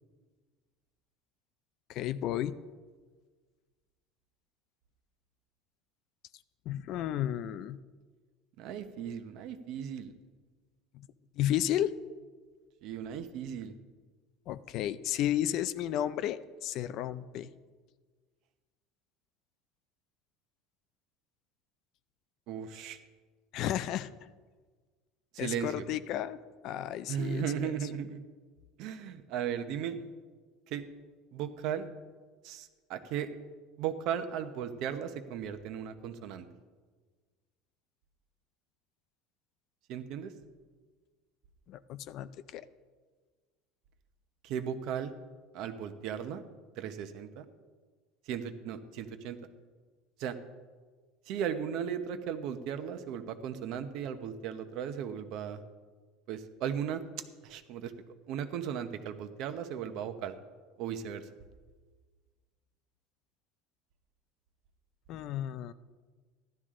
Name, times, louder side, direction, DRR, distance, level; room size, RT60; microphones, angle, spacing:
voice 1, 1.9-2.6 6.7-7.8 11.4-11.9 14.5-17.5 23.5-24.1 25.4-26.4 26.6-27.7 41.7-42.7 65.1-65.7, left 12 dB, 45° left, 14 dB, 0.4 m, -33 dB
voice 2, 8.6-10.1 12.8-13.7 22.5-23.0 25.3-25.8 27.1-28.2 28.8-30.0 30.7-30.9 31.3-31.9 32.4-33.3 33.8-36.5 39.9-40.3 44.4-45.1 45.5-46.4 46.8-47.4 48.3-49.4 50.2-50.4 51.3-55.6 56.3-57.0 57.4-57.9 58.3-60.4 60.8-61.3, right 8 dB, 50° right, 9 dB, 0.9 m, -36 dB
15.0 x 12.0 x 3.7 m, 1.4 s
cardioid pair, 165°, 0 cm